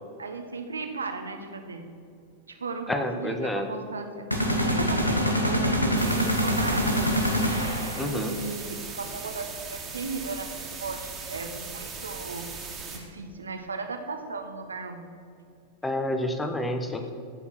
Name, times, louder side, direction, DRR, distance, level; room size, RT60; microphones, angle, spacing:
voice 1, 0.2-1.9 2.5-4.3 4.6-7.6 8.0-10.5 10.8-12.6 12.9-15.1 17.0-17.1, right 4 dB, 75° right, 6 dB, 1.1 m, -36 dB
voice 2, 2.9-3.7 8.0-8.3 15.8-17.1, left 1 dB, 10° left, 7 dB, 1.0 m, -29 dB
sound 1, 4.3-8.2, equal, 85° left, 1.2 m, -25 dB
sound 2, 6.0-13.0, right 5 dB, 20° right, 2.0 m, -39 dB
15.0 x 5.6 x 5.9 m, 2.4 s
figure-of-eight pair, 90°, 0 cm